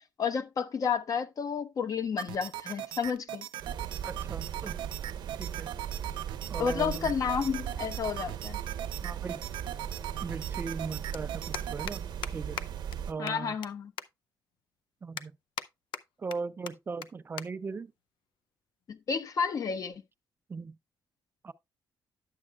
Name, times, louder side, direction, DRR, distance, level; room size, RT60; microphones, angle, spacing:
voice 1, 0.2-3.5 6.6-8.6 13.2-13.9 18.9-20.0, left 6 dB, 45° left, 0.9 m, -31 dB
sound 1, 2.2-12.0, right 13 dB, 85° right, 0.5 m, -40 dB
sound 2, 3.6-13.1, right 8 dB, 65° right, 0.9 m, -38 dB
voice 2, 4.0-4.8 5.4-5.7 6.5-7.1 9.0-9.4 10.2-12.0 12.3-12.6 13.1-13.6 15.0-15.4 16.2-17.9 20.5-20.8 21.4-21.5, right 4 dB, 25° right, 0.4 m, -38 dB
sound 3, 11.1-11.2 11.5-11.9 12.2-12.3 12.6-12.7 12.9-13.0 13.3-13.7 14.0-14.1 14.5-14.6 15.2-15.7 15.9-16.4 16.7-16.8 17.0-17.1 17.4-17.5 17.8-18.0 18.8-19.0, left 9 dB, 75° left, 0.6 m, -38 dB
10.5 x 7.3 x 2.3 m
cardioid pair, 120°, 8 cm